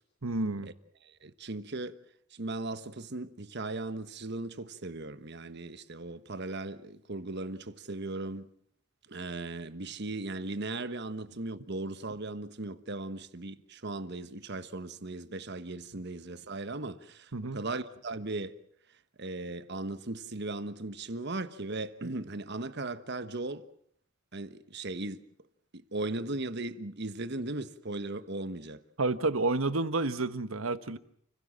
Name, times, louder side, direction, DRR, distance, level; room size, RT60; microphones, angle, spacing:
voice 1, 0.2-0.7 17.3-17.6 29.0-31.0, right 2 dB, 80° right, 1.3 m, -30 dB
voice 2, 1.0-2.0 2.3-8.5 9.1-18.5 19.2-23.6 24.3-25.2 25.7-28.8, right 2 dB, 55° right, 1.3 m, -37 dB
29.5 x 16.5 x 7.5 m
head